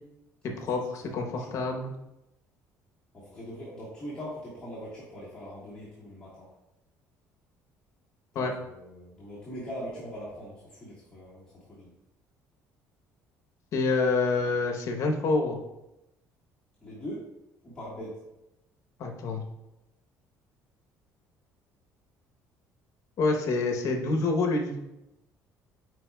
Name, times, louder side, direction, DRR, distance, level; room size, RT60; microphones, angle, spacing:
voice 1, 0.4-1.9 8.3-8.5 13.7-15.6 19.0-19.4 23.2-24.8, left 3 dB, 55° left, 3 dB, 0.9 m, -27 dB
voice 2, 1.0-1.7 3.1-6.5 8.3-11.9 16.8-17.3 17.6-18.2, equal, 15° left, -9 dB, 1.5 m, -41 dB
9.5 x 4.6 x 2.3 m, 0.92 s
cardioid pair, 150°, 6 cm